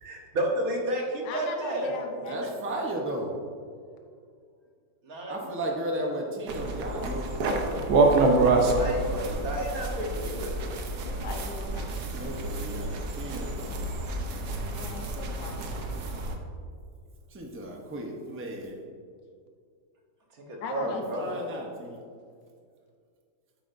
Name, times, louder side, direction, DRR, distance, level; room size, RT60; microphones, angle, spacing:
voice 1, 0.0-1.9 5.0-5.5 8.4-10.5 20.4-21.2, right 1 dB, 55° right, 0 dB, 1.6 m, -31 dB
voice 2, 1.2-3.0 11.0-12.3 14.7-15.9 20.6-21.6, left 4 dB, 75° left, 3 dB, 1.5 m, -40 dB
voice 3, 2.3-3.3 5.3-7.9 12.0-13.9 17.3-18.8 20.9-22.0, right 1 dB, 15° right, 0 dB, 0.4 m, -35 dB
sound 1, 6.5-16.4, right 2 dB, 70° right, 1.5 m, -27 dB
9.1 x 8.3 x 2.6 m, 2.2 s
omnidirectional pair, 1.9 m